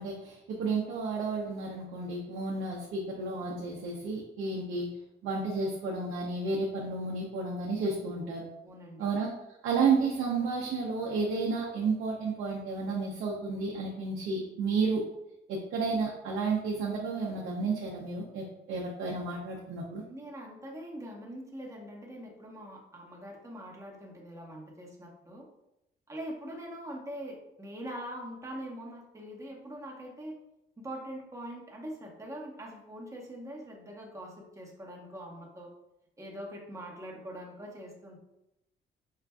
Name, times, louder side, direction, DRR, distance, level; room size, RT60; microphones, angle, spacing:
voice 1, 0.0-4.9 5.2-8.4 9.0-9.3 9.6-15.0 15.5-20.0, right 4 dB, 85° right, -3 dB, 0.7 m, -31 dB
voice 2, 8.6-9.1 20.1-25.5 26.1-30.3 30.8-35.7 36.2-38.2, equal, 15° right, -2 dB, 1.0 m, -43 dB
5.5 x 2.4 x 2.3 m, 0.86 s
cardioid pair, 90°, 20 cm